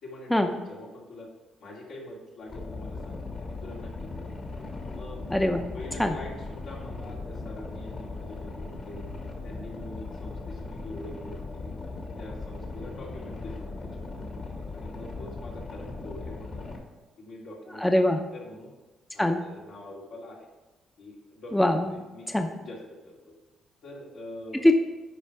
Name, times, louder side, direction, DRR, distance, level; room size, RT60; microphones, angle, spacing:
voice 1, 0.0-1.3 1.6-3.2 3.6-4.3 4.9-5.2 5.7-9.1 9.4-11.7 12.2-14.1 14.7-16.8 17.2-17.8 18.3-18.7 19.1-20.5 21.0-22.8 23.0-23.3 23.8-24.7, left 1 dB, 75° left, -4 dB, 2.8 m, -44 dB
Boat Water vehicle, 2.5-16.8, left 3 dB, 50° left, 2.0 m, -38 dB
voice 2, 5.3-5.7 6.0-6.2 17.8-18.2 19.2-19.4 21.5-22.0 22.3-22.5 24.6-24.7, left 1 dB, 5° left, 5 dB, 0.6 m, -22 dB
9.9 x 5.1 x 4.8 m, 1.1 s
cardioid pair, 90°, 0 cm